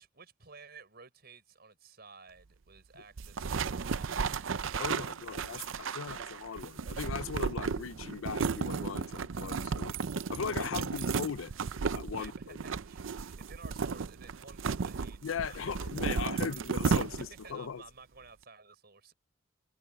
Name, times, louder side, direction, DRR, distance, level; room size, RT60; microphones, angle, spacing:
voice 1, 0.0-5.4 6.0-6.1 9.9-10.3 10.6-11.0 12.1-15.7 16.0-16.6 16.9-17.0 17.4-19.1, right 5 dB, 50° right, 5.6 m, -55 dB
sound 1, 3.2-17.5, right 5 dB, 75° right, 0.6 m, -34 dB
voice 2, 4.8-10.0 10.3-11.5 11.9-12.6 15.2-17.8, left 6 dB, 80° left, 0.5 m, -38 dB
head